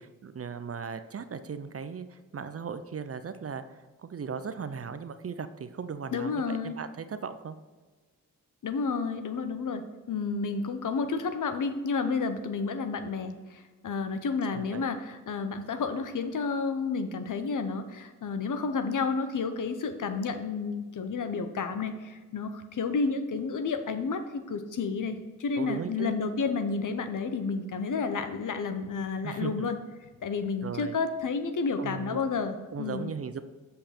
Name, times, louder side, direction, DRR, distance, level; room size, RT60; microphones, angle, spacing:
voice 1, 0.0-7.6 14.5-14.8 25.6-26.2 29.2-29.7 30.6-31.0 31.8-32.2 32.7-33.4, right 6 dB, 40° right, 11 dB, 0.6 m, -37 dB
voice 2, 6.1-6.8 8.6-33.1, left 4 dB, 60° left, 8 dB, 0.8 m, -31 dB
6.7 x 5.6 x 4.4 m, 1.3 s
cardioid pair, 45°, 35 cm